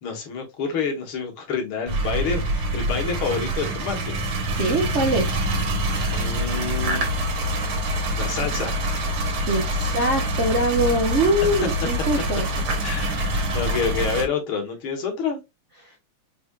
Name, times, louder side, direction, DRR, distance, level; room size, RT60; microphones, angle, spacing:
voice 1, 0.0-4.2 6.1-7.1 8.2-8.8 11.4-11.5 12.8-15.4, left 5 dB, 80° left, 2.1 m, -28 dB
sound 1, 1.9-14.3, right 1 dB, 85° right, 2.1 m, -25 dB
voice 2, 4.5-5.4 9.5-12.5, right 1 dB, 55° right, 0.7 m, -23 dB
5.0 x 3.6 x 2.3 m
omnidirectional pair, 2.3 m